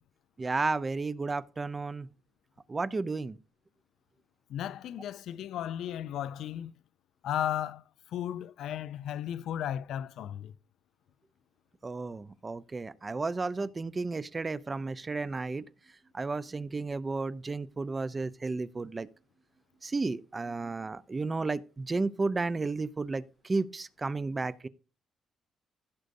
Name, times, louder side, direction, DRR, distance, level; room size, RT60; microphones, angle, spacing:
voice 1, 0.4-2.1 2.7-3.4 11.8-15.6 16.1-19.1 19.8-24.7, right 3 dB, 25° right, 0.5 m, -33 dB
voice 2, 4.5-6.7 7.2-7.8 8.1-10.5, left 10 dB, 80° left, 0.3 m, -35 dB
16.0 x 6.4 x 2.6 m
cardioid pair, 90°, 0 cm